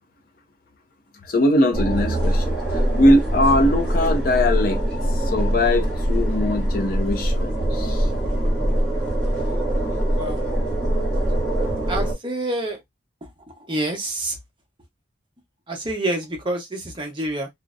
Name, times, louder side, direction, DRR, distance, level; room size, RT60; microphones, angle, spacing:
voice 1, 1.3-4.8 5.3-8.1, left 1 dB, 50° left, 0.5 m, -21 dB
sound 1, 1.7-12.1, right 1 dB, 5° left, 1.0 m, -23 dB
voice 2, 11.9-12.8 13.7-14.3 15.7-17.5, right 1 dB, 25° right, 0.7 m, -27 dB
2.6 x 2.1 x 2.4 m
head